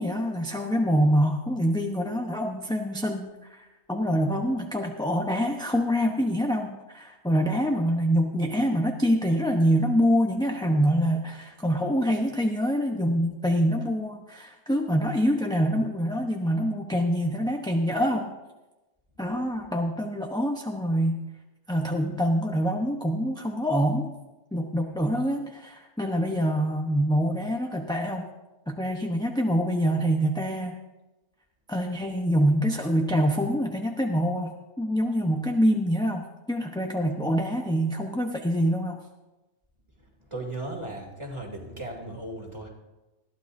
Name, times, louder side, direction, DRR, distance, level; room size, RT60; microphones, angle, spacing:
voice 1, 0.0-18.3 19.2-21.2 21.7-24.1 24.5-28.2 28.7-30.8 31.7-39.0, equal, 5° left, 1 dB, 0.8 m, -25 dB
voice 2, 40.3-42.7, right 1 dB, 25° right, 0 dB, 2.9 m, -36 dB
20.5 x 15.0 x 2.7 m, 1.1 s
omnidirectional pair, 1.2 m